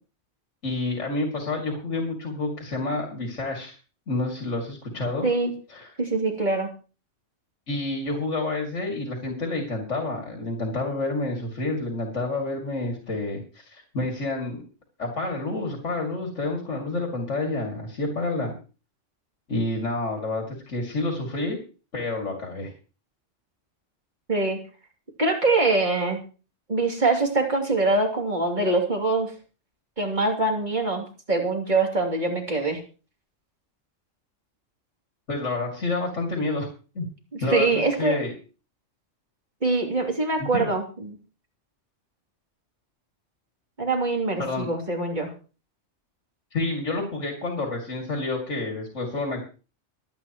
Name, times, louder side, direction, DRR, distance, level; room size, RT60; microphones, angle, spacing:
voice 1, 0.6-3.8 4.1-5.3 5.7-5.9 7.7-14.6 15.0-18.5 19.5-21.6 21.9-22.7 35.3-36.7 36.9-37.0 37.4-38.3 40.4-40.7 44.4-44.7 46.5-49.5, left 2 dB, 75° left, 1 dB, 2.9 m, -29 dB
voice 2, 6.0-6.7 24.3-24.6 25.2-26.2 26.7-29.3 30.0-32.8 37.3-38.2 39.6-41.2 43.8-45.3, right 3 dB, 40° right, 1 dB, 3.0 m, -24 dB
24.5 x 9.1 x 3.1 m, 0.35 s
omnidirectional pair, 1.3 m